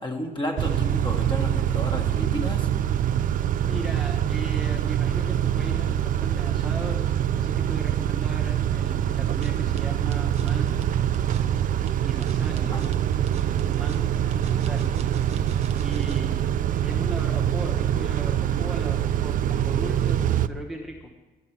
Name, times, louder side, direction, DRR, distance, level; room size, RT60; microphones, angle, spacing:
voice 1, 0.0-2.7 12.6-12.8, left 1 dB, 30° left, 2 dB, 1.7 m, -32 dB
Car / Idling / Accelerating revving vroom, 0.6-20.5, right 10 dB, 55° right, 0.4 m, -24 dB
voice 2, 3.6-10.9 12.0-14.9 15.8-16.5 16.8-21.1, right 1 dB, ahead, 0 dB, 1.0 m, -38 dB
sound 1, 9.3-16.4, right 5 dB, 40° right, 0.8 m, -43 dB
11.5 x 7.4 x 6.0 m, 1.2 s
cardioid pair, 120°, 17 cm